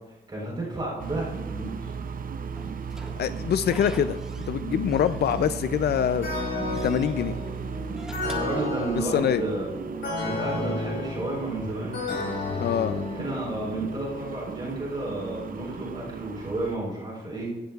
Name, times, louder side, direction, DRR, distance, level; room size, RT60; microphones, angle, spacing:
voice 1, 0.1-1.9 8.3-9.7 10.2-12.0 13.1-17.5, right 2 dB, 25° right, -5 dB, 4.0 m, -32 dB
sound 1, 1.0-16.8, right 6 dB, 50° right, 0.5 m, -36 dB
Slam / Squeak, 2.5-4.6 4.9-5.9 6.2-7.1 7.8-9.3, equal, 5° right, 1.6 m, -46 dB
voice 2, 3.2-4.2 4.5-6.3 6.8-7.4 9.0-9.4 12.6-13.0, left 9 dB, 60° left, 12 dB, 0.4 m, -24 dB
sound 2, 6.2-13.9, left 2 dB, 90° left, 4.6 m, -32 dB
17.0 x 12.5 x 2.4 m, 1.1 s
wide cardioid pair, 115°, 18 cm